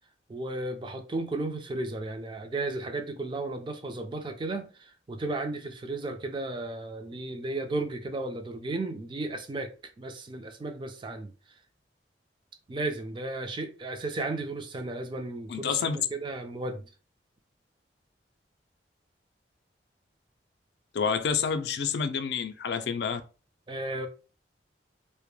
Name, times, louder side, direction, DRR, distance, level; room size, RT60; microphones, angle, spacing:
voice 1, 0.3-11.3 12.7-16.8 23.7-24.1, right 2 dB, 25° right, 0.3 m, -34 dB
voice 2, 15.5-16.0 20.9-23.2, left 6 dB, 65° left, 0.3 m, -28 dB
2.1 x 2.1 x 3.0 m
head